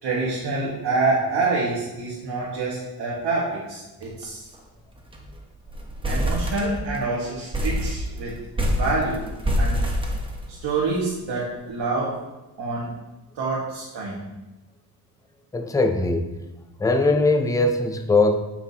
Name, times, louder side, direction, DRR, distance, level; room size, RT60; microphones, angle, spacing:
voice 1, 0.0-4.4 6.1-8.3 8.7-9.3 9.6-9.8 10.6-12.2 12.6-12.9 13.3-14.2, right 3 dB, 80° right, -6 dB, 1.7 m, -26 dB
sound 1, 4.0-4.2 4.5-4.6 4.9-5.3 5.7-7.1 7.5-10.8, equal, 15° right, 0.9 m, -26 dB
voice 2, 15.5-16.3 16.8-18.4, left 2 dB, 10° left, 6 dB, 0.4 m, -20 dB
9.1 x 6.2 x 2.8 m, 1.0 s
wide cardioid pair, 160°, 39 cm